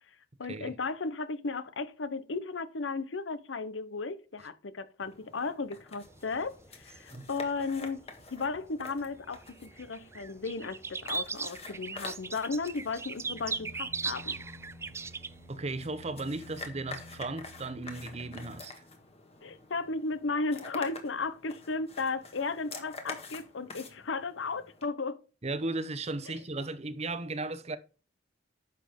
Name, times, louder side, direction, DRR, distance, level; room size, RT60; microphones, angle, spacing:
voice 1, 0.4-8.0 8.3-14.3 19.4-25.2 26.3-26.4, left 4 dB, 85° left, 0.8 m, -35 dB
sound 1, 5.0-24.9, left 3 dB, 35° left, 1.6 m, -48 dB
sound 2, 6.1-8.6 9.0-15.4, right 4 dB, 15° right, 0.3 m, -38 dB
sound 3, 13.2-18.6, left 1 dB, 85° right, 1.8 m, -51 dB
voice 2, 15.5-18.7 25.4-27.8, right 2 dB, 35° right, 0.8 m, -36 dB
10.5 x 6.7 x 3.6 m
head